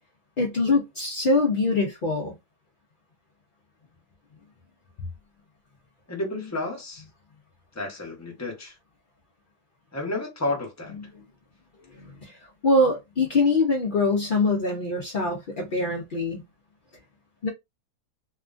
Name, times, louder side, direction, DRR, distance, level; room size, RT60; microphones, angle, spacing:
voice 1, 0.4-2.3 11.9-12.4 12.6-16.4 17.4-17.5, left 2 dB, 70° left, 0.4 m, -23 dB
voice 2, 6.1-7.0 7.7-8.8 9.9-10.9, left 2 dB, 15° left, 0.6 m, -31 dB
2.9 x 2.3 x 2.5 m
omnidirectional pair, 1.7 m